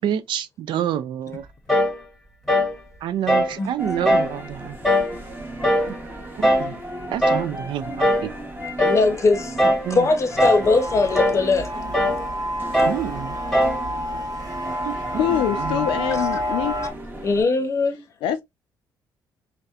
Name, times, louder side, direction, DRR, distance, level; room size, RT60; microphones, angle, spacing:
voice 1, 0.0-1.5 3.0-4.8 5.9-6.0 6.4-6.8 7.1-8.3 9.8-10.1 12.8-13.4 14.8-15.9, right 10 dB, 70° right, 0.4 m, -28 dB
sound 1, 1.7-2.0 2.5-2.8 3.3-3.6 4.0-4.3 4.8-5.2 5.6-5.9 6.4-6.7 7.2-7.5 8.0-8.3 8.8-9.1 9.6-9.9 10.4-10.7 11.1-11.4 11.9-12.2 12.7-13.0 13.5-13.8, equal, ahead, 1.0 m, -20 dB
sound 2, 3.8-17.4, right 1 dB, 20° right, 0.9 m, -36 dB
voice 2, 8.8-9.6 9.9-11.7 17.2-18.0, left 3 dB, 35° left, 0.7 m, -20 dB
sound 3, 10.6-16.9, equal, 45° right, 1.1 m, -29 dB
voice 3, 15.2-16.8 18.2-18.4, left 10 dB, 85° left, 0.4 m, -24 dB
2.6 x 2.1 x 2.3 m
cardioid pair, 85°, 9 cm